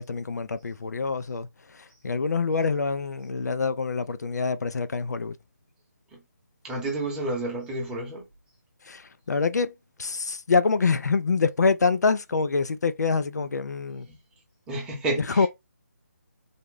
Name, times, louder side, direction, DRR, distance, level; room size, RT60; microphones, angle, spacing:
voice 1, 0.0-5.4 8.8-9.7 10.0-14.1 15.2-15.5, left 4 dB, 75° left, 0.4 m, -26 dB
voice 2, 6.6-8.3 14.1-14.2 14.7-15.5, right 2 dB, 10° right, 0.9 m, -30 dB
3.4 x 2.1 x 3.7 m
figure-of-eight pair, 160°, 9 cm